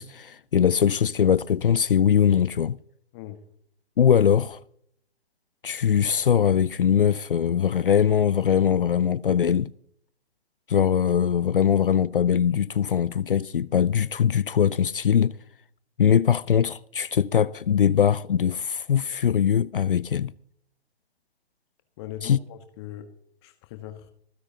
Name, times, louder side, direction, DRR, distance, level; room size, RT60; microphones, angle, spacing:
voice 1, 0.0-2.8 4.0-4.6 5.6-9.7 10.7-15.3 16.0-20.3 22.2-22.4, left 8 dB, 55° left, 0.5 m, -21 dB
voice 2, 22.0-23.1 23.4-24.1, left 12 dB, 25° left, 1.2 m, -40 dB
25.5 x 9.8 x 2.8 m
figure-of-eight pair, 130°, 33 cm